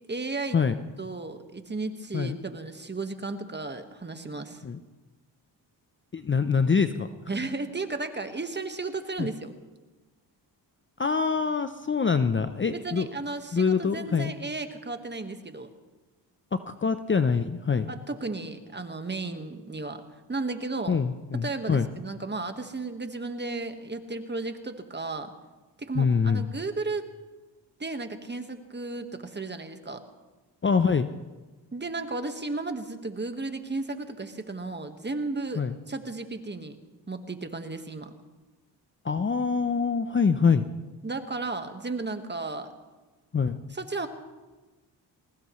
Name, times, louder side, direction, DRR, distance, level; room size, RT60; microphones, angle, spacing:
voice 1, 0.1-0.6 1.0-4.6 7.3-9.5 12.7-15.7 17.9-20.0 20.3-21.0 21.4-25.3 25.8-27.0 27.8-30.0 31.7-35.6 35.9-36.8 37.1-38.1 41.0-42.7 43.7-44.1, right 3 dB, 25° right, 7 dB, 1.5 m, -34 dB
voice 2, 6.1-7.1 9.2-9.3 11.0-13.1 13.5-14.3 16.5-17.9 20.9-21.9 25.9-26.4 30.6-31.1 35.6-35.8 39.0-40.7 43.3-43.6, left 5 dB, 25° left, 10 dB, 0.6 m, -25 dB
21.5 x 19.0 x 3.2 m, 1.2 s
cardioid pair, 65°, 44 cm